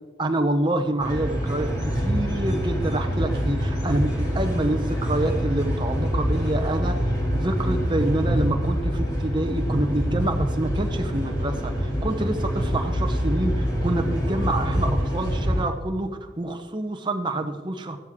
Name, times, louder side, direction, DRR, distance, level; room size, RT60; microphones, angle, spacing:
voice 1, 0.2-18.0, right 1 dB, 25° right, 5 dB, 0.9 m, -27 dB
sound 1, 1.0-15.6, equal, 20° left, 2.8 m, -25 dB
13.5 x 12.5 x 3.7 m, 1.2 s
head